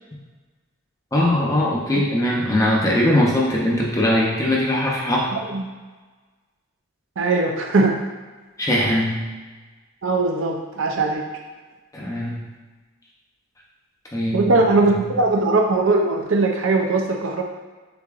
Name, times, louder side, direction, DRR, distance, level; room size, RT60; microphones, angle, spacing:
voice 1, 1.1-5.4 8.6-9.3 11.9-12.4 14.1-15.1, left 1 dB, 15° left, -4 dB, 0.6 m, -21 dB
voice 2, 5.3-5.6 7.2-8.0 10.0-11.2 14.3-17.4, right 3 dB, 60° right, 2 dB, 0.5 m, -20 dB
6.7 x 2.8 x 2.4 m, 1.3 s
head